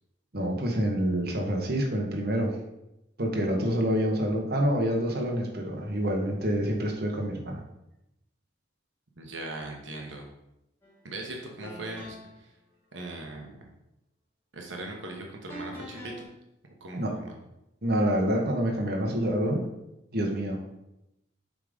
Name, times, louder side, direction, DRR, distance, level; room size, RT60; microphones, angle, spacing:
voice 1, 0.3-2.6 3.2-7.6 16.9-17.2 17.8-19.6 20.1-20.6, equal, 50° right, 1 dB, 1.3 m, -27 dB
voice 2, 9.2-10.3 11.0-12.5 12.9-13.6 14.5-16.1 16.8-17.4, right 2 dB, 70° right, 0 dB, 1.1 m, -39 dB
sound 1, 10.8-11.0 11.6-12.4 15.5-16.2, left 1 dB, 15° left, 1.8 m, -43 dB
7.7 x 3.7 x 5.1 m, 0.88 s
head